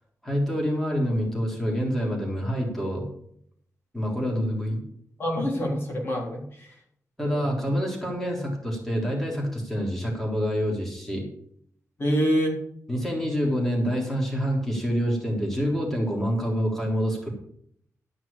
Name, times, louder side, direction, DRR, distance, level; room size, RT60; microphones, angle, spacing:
voice 1, 0.2-3.1 3.9-4.8 7.2-11.3 12.9-17.3, equal, 5° left, -2 dB, 3.7 m, -27 dB
voice 2, 5.2-6.8 7.2-7.5 12.0-12.6, equal, 40° left, -2 dB, 3.6 m, -26 dB
13.0 x 6.0 x 7.1 m, 0.67 s
wide cardioid pair, 135°, 6 cm